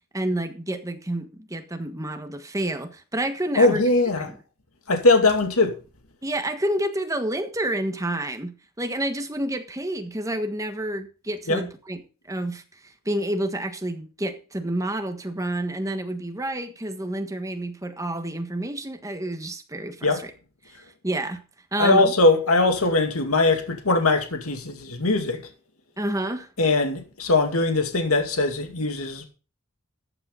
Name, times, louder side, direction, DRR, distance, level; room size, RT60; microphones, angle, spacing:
voice 1, 0.1-3.8 4.2-4.4 6.2-12.0 12.3-20.3 20.6-20.8 21.0-21.4 21.7-22.1 26.0-26.5, right 1 dB, 15° right, 1.4 m, -29 dB
voice 2, 3.6-4.3 4.9-5.7 11.5-11.6 20.0-20.2 21.8-25.5 26.6-29.3, left 2 dB, 85° left, 2.4 m, -21 dB
14.0 x 8.9 x 3.9 m
head